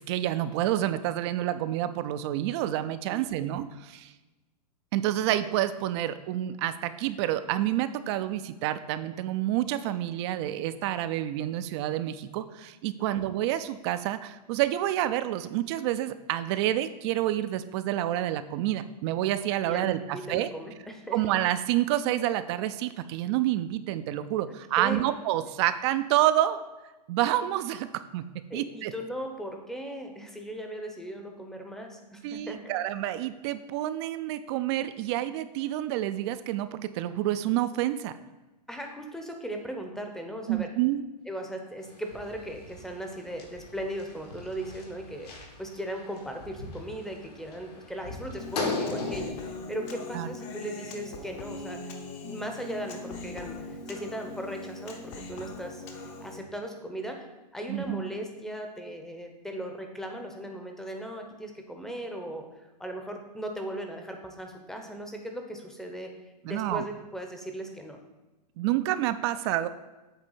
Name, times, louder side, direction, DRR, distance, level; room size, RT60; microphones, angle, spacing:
voice 1, 0.1-4.1 4.9-20.5 21.1-26.6 27.1-28.2 28.5-28.9 32.2-38.1 40.5-41.0 50.1-50.3 57.7-58.0 66.4-66.8 68.6-69.7, right 13 dB, 40° right, 12 dB, 0.4 m, -28 dB
voice 2, 3.1-3.5 13.0-13.2 19.7-21.2 24.8-25.1 28.5-32.6 38.7-40.7 41.3-45.3 45.6-52.0 52.3-55.8 56.2-57.3 57.5-62.5 62.8-66.1 66.4-68.0, right 1 dB, ahead, 3 dB, 0.8 m, -38 dB
sound 1, 41.8-49.3, left 3 dB, 65° left, 1.9 m, -38 dB
Human voice, 48.4-56.4, left 3 dB, 45° left, 1.0 m, -41 dB
8.2 x 3.3 x 5.5 m, 1.1 s
hypercardioid pair, 130°, 21 cm